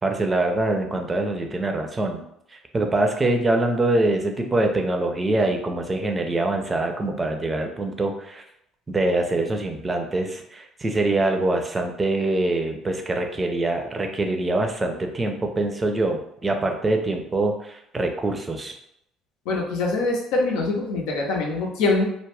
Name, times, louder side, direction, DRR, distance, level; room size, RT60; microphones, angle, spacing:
voice 1, 0.0-2.2 2.5-8.4 8.9-18.7, right 2 dB, 25° right, 4 dB, 0.5 m, -24 dB
voice 2, 19.5-22.1, left 3 dB, 75° left, 0 dB, 0.6 m, -23 dB
2.3 x 2.1 x 3.3 m, 0.75 s
hypercardioid pair, 60°, 0 cm